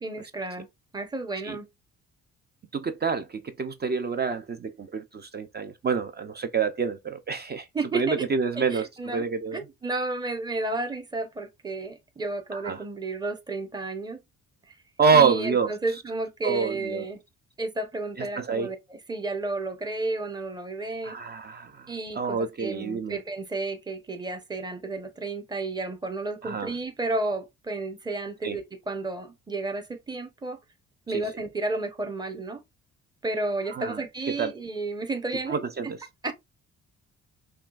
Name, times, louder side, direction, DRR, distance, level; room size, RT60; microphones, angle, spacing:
voice 1, 0.0-0.7 0.9-1.7 7.7-8.2 8.5-9.2 9.5-14.2 14.7-14.8 15.1-17.2 17.6-21.1 21.9-30.6 31.1-32.6 33.2-35.9 36.2-36.3, right 2 dB, 15° right, 0.9 m, -32 dB
voice 2, 2.7-7.7 7.9-9.6 12.5-12.8 15.0-15.7 16.4-17.0 18.2-18.7 21.0-23.2 26.4-26.7 28.4-28.6 31.1-31.2 33.7-34.0 34.4-34.5 35.5-35.9, right 5 dB, 35° right, 0.5 m, -27 dB
5.7 x 2.3 x 2.4 m
cardioid pair, 90°, 30 cm